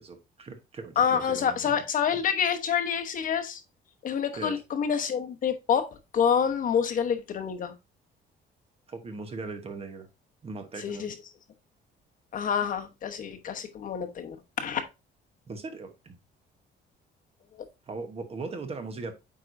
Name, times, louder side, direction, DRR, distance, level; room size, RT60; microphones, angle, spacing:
voice 1, 0.0-1.8 4.3-4.6 8.9-10.1 10.4-11.1 15.5-16.2 17.9-19.1, right 3 dB, 30° right, 1.1 m, -39 dB
voice 2, 1.0-3.6 4.0-5.9 6.1-7.7 10.8-11.1 12.3-14.8, left 7 dB, 45° left, 1.0 m, -27 dB
8.7 x 4.7 x 2.6 m
cardioid pair, 155°, 19 cm